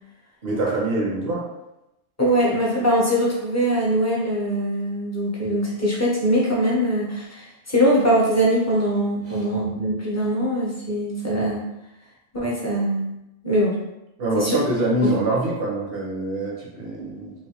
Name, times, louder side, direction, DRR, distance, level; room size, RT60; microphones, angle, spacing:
voice 1, 0.4-1.5 9.3-9.4 14.2-17.3, right 1 dB, 55° right, -4 dB, 1.1 m, -24 dB
voice 2, 2.2-11.6 12.3-13.1 13.4-13.8 14.3-14.5 15.0-15.1, equal, 15° left, -6 dB, 0.6 m, -22 dB
3.2 x 2.6 x 2.8 m, 0.90 s
omnidirectional pair, 1.3 m